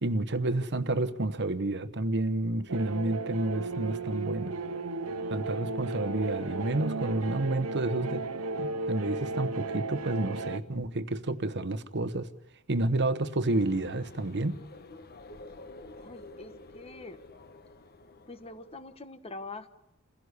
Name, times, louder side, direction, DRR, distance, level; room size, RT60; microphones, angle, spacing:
voice 1, 0.0-4.6 5.3-8.3 8.6-12.3 12.7-14.6, right 2 dB, 55° right, 1.1 m, -30 dB
sound 1, 2.7-10.6, right 3 dB, 80° right, 1.0 m, -34 dB
sound 2, 13.5-19.0, left 2 dB, 45° left, 1.1 m, -50 dB
voice 2, 16.0-17.2 18.3-19.7, left 3 dB, 25° left, 1.3 m, -44 dB
28.5 x 16.0 x 8.1 m
head